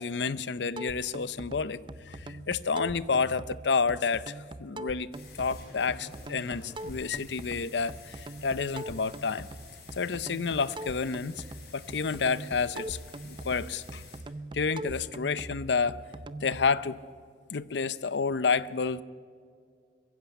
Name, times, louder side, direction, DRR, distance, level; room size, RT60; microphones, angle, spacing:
voice 1, 0.0-5.1 5.4-9.5 10.0-11.4 11.7-13.0 13.2-14.0 14.5-16.0 16.4-17.0 17.5-19.0, left 5 dB, 75° left, 17 dB, 0.6 m, -30 dB
sound 1, 0.8-16.7, right 1 dB, 25° right, 0.5 m, -42 dB
sound 2, 5.1-14.2, left 3 dB, 55° left, 4.5 m, -50 dB
22.5 x 15.5 x 8.2 m, 2.1 s
head